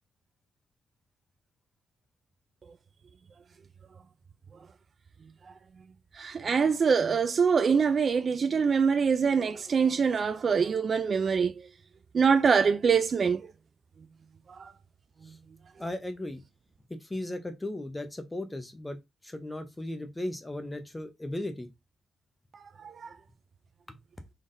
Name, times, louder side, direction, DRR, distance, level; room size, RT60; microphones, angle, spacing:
voice 1, 6.2-11.5 12.1-13.4 23.0-23.1, right 6 dB, 45° right, 0.3 m, -24 dB
voice 2, 15.8-16.4 16.9-19.0 19.2-21.7, left 1 dB, 15° left, 0.6 m, -36 dB
3.9 x 3.4 x 2.6 m
cardioid pair, 100°, 0 cm